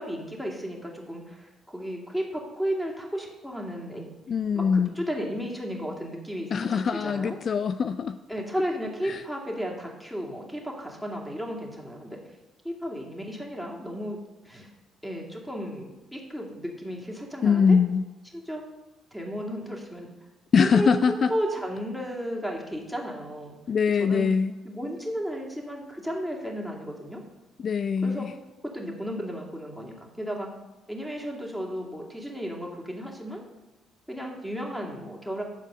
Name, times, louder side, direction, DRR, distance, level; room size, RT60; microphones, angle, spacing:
voice 1, 0.0-4.1 4.5-7.4 8.3-12.2 12.6-14.2 14.4-14.7 15.0-17.8 18.3-18.6 19.1-20.1 20.6-23.6 24.0-24.3 24.6-27.2 28.0-28.3 28.6-30.5 30.9-33.4 34.1-35.4, equal, ahead, -1 dB, 2.4 m, -34 dB
voice 2, 4.3-4.9 6.5-8.2 9.0-9.2 17.4-18.0 20.5-21.3 23.7-24.5 27.6-28.3, left 6 dB, 45° left, 11 dB, 0.3 m, -23 dB
9.9 x 7.2 x 5.3 m, 1.1 s
figure-of-eight pair, 45°, 0 cm